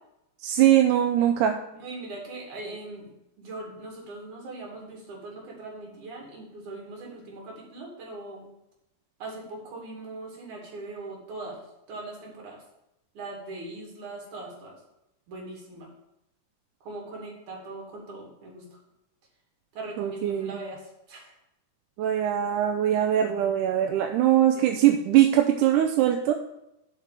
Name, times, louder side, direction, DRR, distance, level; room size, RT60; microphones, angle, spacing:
voice 1, 0.4-1.6 20.0-20.6 22.0-26.3, right 11 dB, 85° right, 4 dB, 2.1 m, -22 dB
voice 2, 1.8-3.1 3.4-8.5 9.2-11.6 11.9-12.6 13.1-14.8 15.3-15.9 16.8-18.8 19.7-21.3 24.5-24.7, right 2 dB, 65° right, -1 dB, 3.8 m, -40 dB
7.4 x 5.2 x 7.3 m, 0.85 s
omnidirectional pair, 3.7 m